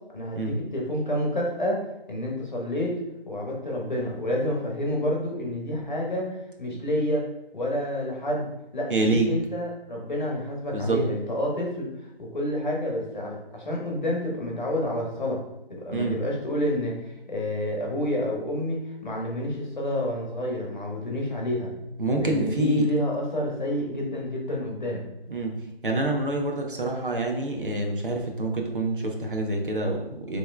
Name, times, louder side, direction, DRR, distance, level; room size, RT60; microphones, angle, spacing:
voice 1, 0.1-2.9 3.3-7.3 7.5-11.9 12.2-15.4 15.7-21.7 22.2-25.0, left 1 dB, 50° left, -1 dB, 1.2 m, -29 dB
voice 2, 8.9-9.3 10.7-11.0 15.9-16.2 22.0-22.8 25.3-25.6 25.8-30.4, right 2 dB, 55° right, 2 dB, 0.9 m, -26 dB
5.7 x 3.1 x 2.2 m, 0.89 s
figure-of-eight pair, 175°, 30 cm